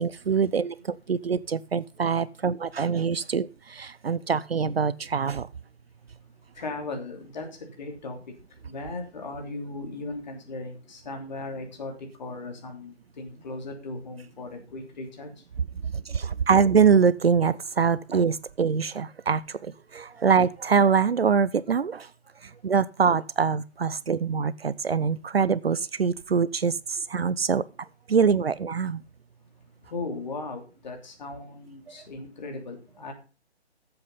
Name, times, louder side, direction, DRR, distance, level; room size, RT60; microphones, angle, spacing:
voice 1, 0.0-5.5 15.9-22.1 22.6-27.6 28.1-29.0, right 6 dB, 60° right, 0.6 m, -24 dB
voice 2, 6.5-8.2 8.6-15.4 29.9-33.1, left 3 dB, 40° left, 3.0 m, -37 dB
14.0 x 7.8 x 4.0 m
figure-of-eight pair, 145°, 34 cm